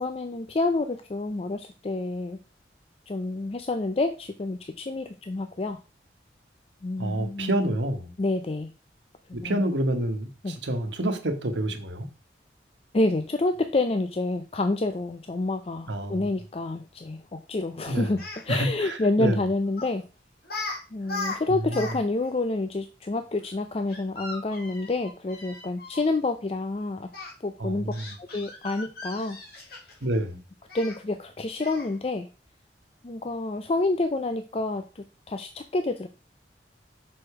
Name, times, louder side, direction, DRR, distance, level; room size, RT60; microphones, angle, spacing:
voice 1, 0.0-2.4 3.1-5.8 6.8-7.8 8.2-8.7 9.4-9.6 10.4-10.6 12.9-20.0 20.9-27.1 27.4-27.9 28.2-29.4 30.7-32.3 33.0-36.1, left 2 dB, 35° left, 8 dB, 0.4 m, -28 dB
voice 2, 7.0-8.1 9.3-12.1 15.9-16.3 17.9-18.1 18.5-19.4 27.6-28.0 30.0-30.4, right 1 dB, 80° right, 6 dB, 1.2 m, -28 dB
Speech, 18.2-18.4 19.8-20.0 20.4-20.8 21.0-22.0 22.2-22.3 23.9-26.0 27.1-27.3 27.9-30.1 30.7-31.0 31.6-31.9, left 2 dB, 55° left, 2.2 m, -37 dB
6.2 x 4.8 x 4.8 m, 0.33 s
head